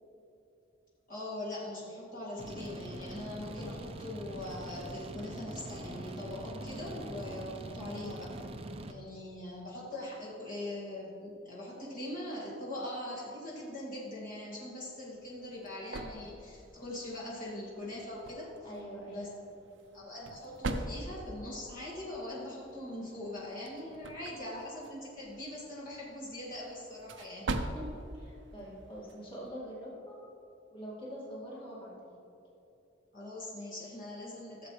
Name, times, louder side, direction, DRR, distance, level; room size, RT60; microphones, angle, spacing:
voice 1, 1.1-8.3 8.9-18.7 19.1-19.3 19.9-27.5 33.1-34.7, left 1 dB, 45° left, -6 dB, 2.1 m, -41 dB
sound 1, 2.4-8.9, right 1 dB, 30° right, 0.6 m, -43 dB
sound 2, 15.0-29.5, right 2 dB, 75° right, 0.6 m, -44 dB
voice 2, 18.6-19.3 27.7-30.2 30.7-32.2, equal, 30° left, -5 dB, 2.2 m, -44 dB
15.0 x 7.4 x 3.2 m, 2.8 s
head